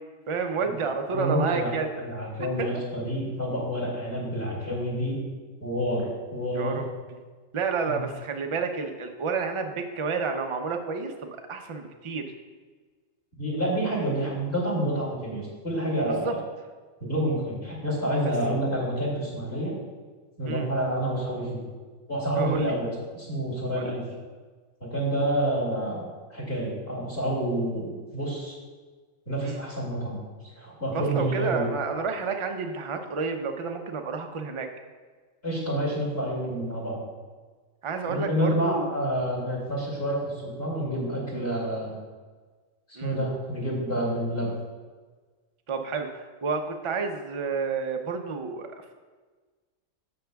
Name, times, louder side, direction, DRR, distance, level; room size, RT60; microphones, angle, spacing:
voice 1, 0.3-1.9 2.4-2.7 6.5-6.9 7.5-12.3 16.0-16.3 20.4-20.7 22.4-22.7 23.8-24.0 29.4-29.6 30.9-34.7 37.8-38.9 42.9-43.2 45.7-48.9, right 5 dB, 35° right, 5 dB, 0.5 m, -30 dB
voice 2, 1.1-1.7 2.0-5.2 5.6-6.8 7.8-8.0 13.4-16.4 17.0-19.7 20.4-21.6 22.1-24.0 24.8-28.6 29.3-30.2 30.6-31.7 35.4-37.0 38.1-41.9 43.0-44.5, right 1 dB, 50° left, -5 dB, 2.7 m, -28 dB
12.0 x 7.7 x 2.3 m, 1.4 s
omnidirectional pair, 1.4 m